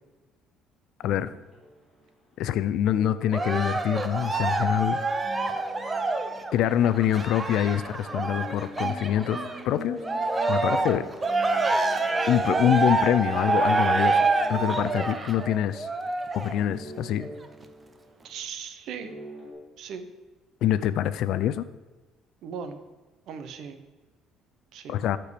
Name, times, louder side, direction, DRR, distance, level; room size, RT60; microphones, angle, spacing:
sound 1, 1.0-2.0 3.1-4.4 5.0-6.9 7.1-7.3 7.8-16.2 16.6-18.2 18.9-19.5, equal, 5° left, 2.9 m, -42 dB
voice 1, 2.4-5.0 6.5-9.4 9.7-10.0 10.5-11.1 12.3-14.2 14.5-15.9 16.3-17.3 20.6-21.6 24.9-25.2, left 11 dB, 65° left, 14 dB, 0.4 m, -25 dB
Cheering, 3.3-9.6 10.0-16.6 17.2-17.3, right 3 dB, 15° right, 0.6 m, -27 dB
voice 2, 18.2-19.1 19.8-20.1 22.4-22.8 23.3-23.8 24.7-25.0, right 6 dB, 60° right, 9 dB, 0.9 m, -38 dB
13.5 x 4.5 x 5.0 m, 1.2 s
cardioid pair, 150°, 0 cm